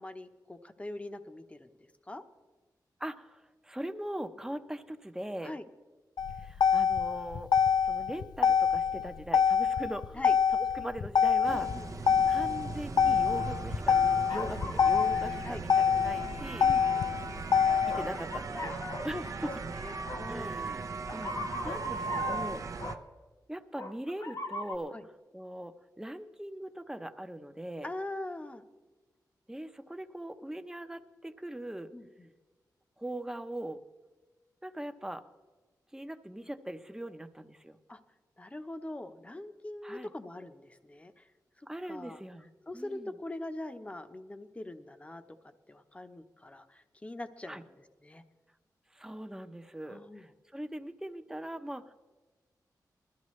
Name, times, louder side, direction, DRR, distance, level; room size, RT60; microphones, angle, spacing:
voice 1, 0.0-2.2 5.4-5.6 10.1-10.4 11.5-11.9 15.4-15.6 16.6-17.1 18.7-18.8 19.1-19.3 19.7-20.6 24.9-25.0 27.8-28.6 31.9-32.3 37.9-38.0 38.4-41.3 41.6-42.2 42.7-45.2 45.7-47.7 48.0-48.2 49.9-50.3, left 1 dB, 20° left, 8 dB, 0.9 m, -42 dB
voice 2, 3.0-5.6 6.4-7.5 7.8-10.2 10.5-11.7 12.3-14.0 14.3-16.7 17.8-18.8 19.0-19.5 20.3-21.3 21.6-22.9 23.5-24.9 25.3-27.9 29.5-31.9 33.0-33.8 34.6-35.2 35.9-37.8 39.8-40.1 41.7-43.1 47.5-47.6 48.9-51.9, right 1 dB, 10° right, 8 dB, 0.8 m, -40 dB
Motor vehicle (road), 6.2-18.2, left 7 dB, 75° left, 0.4 m, -26 dB
sound 1, 11.4-22.9, right 4 dB, 50° right, 0.7 m, -38 dB
sound 2, 14.3-15.6 16.7-17.2 17.9-19.1 19.4-19.6 20.1-20.2 21.1-23.0 23.8-24.8, left 2 dB, 50° left, 1.1 m, -40 dB
20.5 x 13.5 x 3.2 m, 1.3 s
wide cardioid pair, 90°, 7 cm